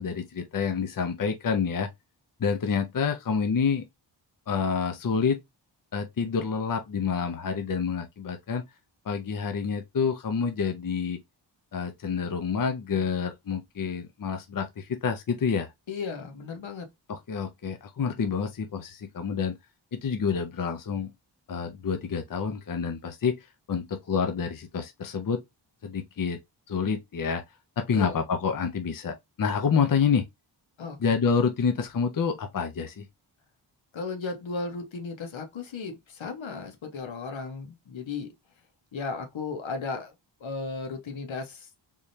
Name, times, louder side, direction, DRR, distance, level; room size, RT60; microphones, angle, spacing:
voice 1, 0.0-1.9 2.4-3.9 4.5-5.4 5.9-8.6 9.1-11.2 11.7-15.7 17.1-19.5 19.9-21.1 21.5-23.4 23.7-25.4 25.8-26.4 26.7-27.4 27.8-30.3 31.0-33.1, left 6 dB, 45° left, 0.7 m, -28 dB
voice 2, 15.9-16.9 27.9-28.1 30.8-31.0 33.9-38.3 38.9-40.1 40.4-41.8, left 4 dB, 85° left, 1.2 m, -35 dB
3.6 x 3.2 x 2.7 m
wide cardioid pair, 105°, 46 cm